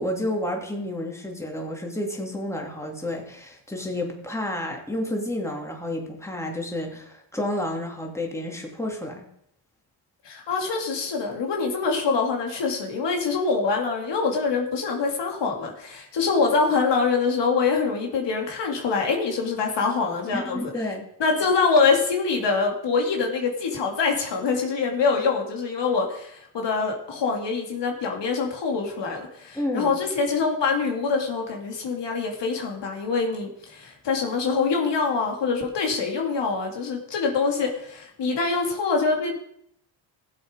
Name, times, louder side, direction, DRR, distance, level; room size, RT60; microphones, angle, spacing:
voice 1, 0.0-9.3 20.3-21.1 29.5-29.9, left 1 dB, 5° left, 0 dB, 2.9 m, -30 dB
voice 2, 10.2-20.7 21.2-39.4, left 4 dB, 60° left, 2 dB, 2.5 m, -24 dB
15.5 x 7.6 x 5.0 m, 0.72 s
supercardioid pair, 70°, 48 cm